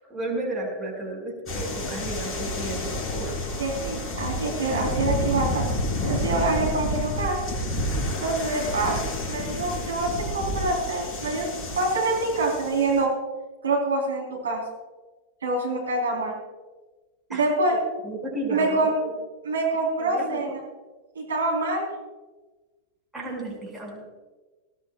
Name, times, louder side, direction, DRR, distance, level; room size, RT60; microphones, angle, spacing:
voice 1, 0.1-3.4 4.5-4.9 17.3-17.4 18.0-19.1 20.0-20.4 23.1-24.0, right 1 dB, 10° right, -2 dB, 6.0 m, -33 dB
sound 1, 1.5-13.0, left 1 dB, 25° left, 5.6 m, -30 dB
voice 2, 3.6-5.6 6.0-7.4 8.2-11.5 11.8-13.1 13.6-14.6 15.4-16.4 17.3-17.8 18.5-18.9 19.4-20.6 21.1-21.9, right 2 dB, 70° right, -1 dB, 4.0 m, -26 dB
20.5 x 17.5 x 2.4 m, 1.2 s
figure-of-eight pair, 90°, 0 cm